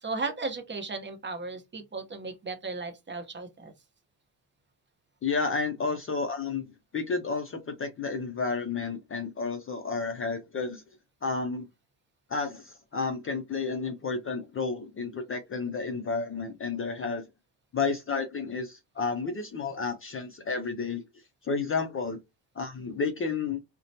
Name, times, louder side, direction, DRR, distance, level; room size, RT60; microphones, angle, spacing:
voice 1, 0.0-3.7 5.9-6.0, right 3 dB, 25° right, 0.7 m, -35 dB
voice 2, 5.2-10.8 11.2-11.6 12.3-17.2 17.7-21.0 21.4-22.2 22.6-23.6, left 4 dB, 30° left, 0.5 m, -31 dB
2.8 x 2.1 x 2.6 m
supercardioid pair, 85°, 47 cm